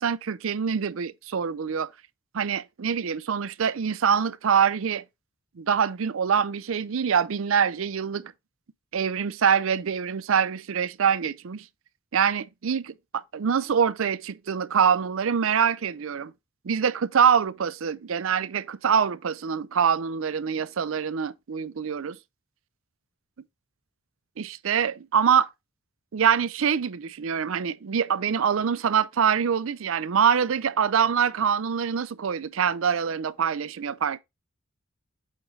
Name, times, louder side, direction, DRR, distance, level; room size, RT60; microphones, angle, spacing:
voice 1, 0.0-1.9 2.3-5.0 5.6-8.3 8.9-11.6 12.1-16.3 16.6-22.2 24.4-25.5 26.1-34.2, right 7 dB, 70° right, 0.5 m, -24 dB
8.2 x 3.8 x 3.9 m
head